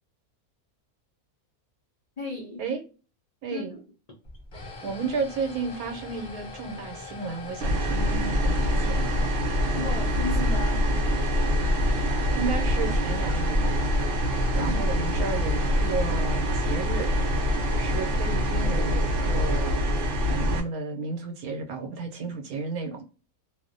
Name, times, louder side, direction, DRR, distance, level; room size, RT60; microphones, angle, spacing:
voice 1, 2.2-2.7 3.5-3.8 9.7-10.9 14.6-14.8 22.2-22.4, left 3 dB, 80° left, 0.3 m, -35 dB
voice 2, 3.4-3.7 4.8-9.2 11.8-14.1 14.5-17.1 17.8-19.9 20.2-23.0, right 4 dB, 85° right, 1.1 m, -33 dB
sound 1, 4.2-20.5, left 2 dB, 30° left, 0.6 m, -41 dB
sound 2, 7.6-20.6, equal, 65° right, 0.9 m, -25 dB
2.5 x 2.0 x 2.4 m
omnidirectional pair, 1.5 m